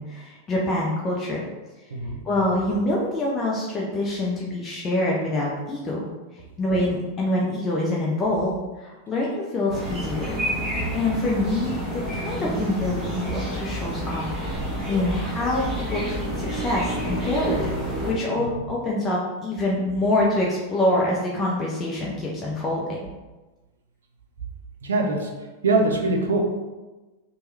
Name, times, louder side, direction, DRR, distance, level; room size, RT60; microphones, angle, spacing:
voice 1, 0.0-1.4 2.2-6.1 6.6-10.3 10.9-11.7 12.1-14.6 14.9-17.6 18.1-23.0, left 1 dB, 25° left, -4 dB, 0.5 m, -25 dB
voice 2, 1.9-2.2 18.3-18.7 24.8-25.3 25.6-26.4, right 2 dB, 65° right, 2 dB, 0.5 m, -23 dB
sound 1, 9.7-18.1, right 1 dB, 5° right, 1.1 m, -29 dB
2.9 x 2.2 x 3.2 m, 1.2 s
figure-of-eight pair, 90°, 0 cm